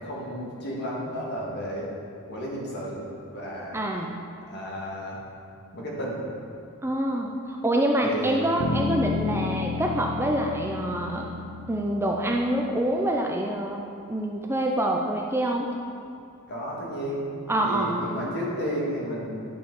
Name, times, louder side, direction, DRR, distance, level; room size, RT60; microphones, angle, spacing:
voice 1, 0.0-1.9 2.3-3.8 4.5-5.2 5.7-6.2 8.0-8.4 16.5-17.3 17.6-19.4, equal, 50° left, -4 dB, 2.0 m, -32 dB
voice 2, 3.7-4.1 6.8-7.3 7.6-11.3 11.7-13.8 14.1-15.7 17.5-18.1, right 1 dB, 10° right, 0 dB, 0.5 m, -26 dB
Bass guitar, 8.6-13.0, left 4 dB, 65° left, 0.9 m, -32 dB
11.0 x 6.7 x 3.8 m, 2.6 s
head